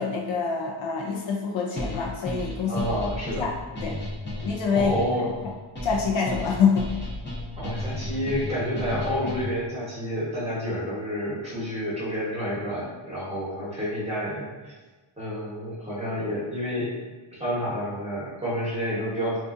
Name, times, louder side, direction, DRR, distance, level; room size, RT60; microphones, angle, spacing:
voice 1, 0.0-2.9 3.4-3.5 3.8-4.0 4.4-4.9 5.4-5.5 5.8-6.9, left 5 dB, 65° left, -1 dB, 0.6 m, -25 dB
sound 1, 1.8-9.7, left 2 dB, 20° left, 0.8 m, -33 dB
voice 2, 2.7-3.4 4.7-5.3 7.6-14.7 15.2-17.0 17.4-19.4, equal, 10° right, -9 dB, 1.0 m, -29 dB
3.7 x 2.5 x 2.5 m, 1.2 s
wide cardioid pair, 170°, 50 cm